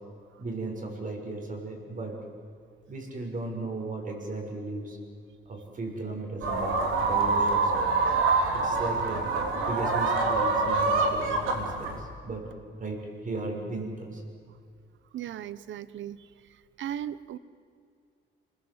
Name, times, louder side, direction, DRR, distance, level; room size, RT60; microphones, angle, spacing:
voice 1, 0.4-2.2 2.9-5.0 5.4-8.1 8.5-9.2 9.6-12.4 12.8-14.2, right 2 dB, 40° right, 2 dB, 6.5 m, -36 dB
sound 1, 6.4-12.0, right 3 dB, 85° right, 3.6 m, -26 dB
voice 2, 15.1-16.2 16.8-17.4, right 10 dB, 70° right, 16 dB, 1.0 m, -36 dB
27.5 x 20.5 x 8.0 m, 2.3 s
cardioid pair, 90°, 20 cm